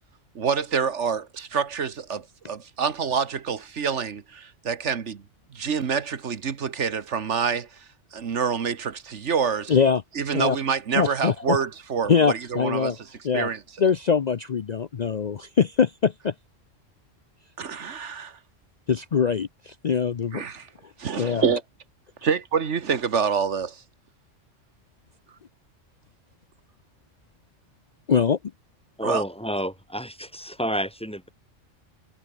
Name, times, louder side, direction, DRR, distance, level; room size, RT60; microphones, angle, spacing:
voice 1, 0.3-5.2 5.5-7.8 8.1-9.7 10.1-13.1 13.3-13.6 17.6-18.4 20.3-20.7 21.0-21.6 22.2-23.8 29.0-29.2, right 6 dB, 70° right, 1.6 m, -27 dB
voice 2, 9.7-10.0 10.3-10.6 10.9-11.6 12.1-13.0 13.2-13.5 13.8-16.3 18.9-20.4 21.2-21.4 28.1-28.4, left 6 dB, 45° left, 0.6 m, -23 dB
voice 3, 29.0-31.3, equal, 5° left, 1.7 m, -30 dB
omnidirectional pair, 1.3 m